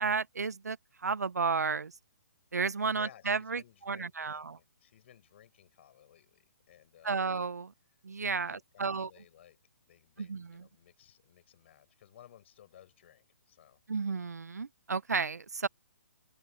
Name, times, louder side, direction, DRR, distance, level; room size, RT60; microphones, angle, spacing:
voice 1, 0.0-1.9 2.5-4.6 7.0-7.7 8.0-9.1 10.2-10.7 13.9-15.7, right 5 dB, 85° right, 0.9 m, -33 dB
voice 2, 2.8-7.3 8.5-9.6 9.9-13.8, left 11 dB, 50° left, 6.9 m, -58 dB
open air
hypercardioid pair, 140°, 9 cm